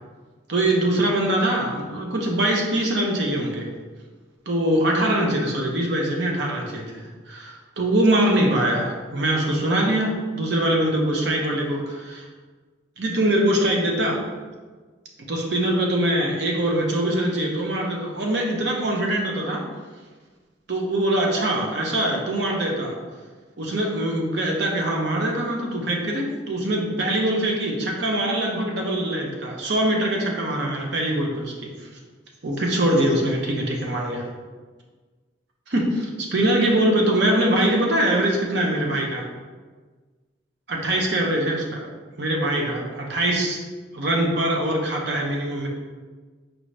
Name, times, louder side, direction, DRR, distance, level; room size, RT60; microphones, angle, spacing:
voice 1, 0.5-3.7 4.5-7.0 7.3-12.3 13.0-14.2 15.3-19.6 20.7-23.0 23.6-31.7 32.4-34.2 35.7-39.2 40.7-41.9 42.2-43.6 43.9-45.7, right 1 dB, 60° right, 0 dB, 0.7 m, -23 dB
4.6 x 2.6 x 3.2 m, 1.4 s
head